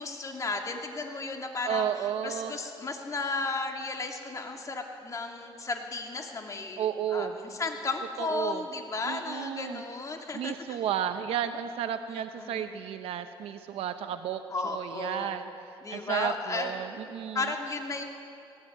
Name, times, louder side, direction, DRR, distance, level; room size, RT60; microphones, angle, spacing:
voice 1, 0.0-10.8 12.1-12.8 14.5-15.4 15.8-16.7 17.3-18.0, left 3 dB, 35° left, 2 dB, 2.6 m, -34 dB
voice 2, 1.7-2.5 6.8-7.3 8.2-8.6 9.1-9.8 10.3-15.5 15.9-17.5, right 9 dB, 90° right, 8 dB, 0.8 m, -32 dB
18.5 x 18.5 x 9.3 m, 2.6 s
cardioid pair, 105°, 10 cm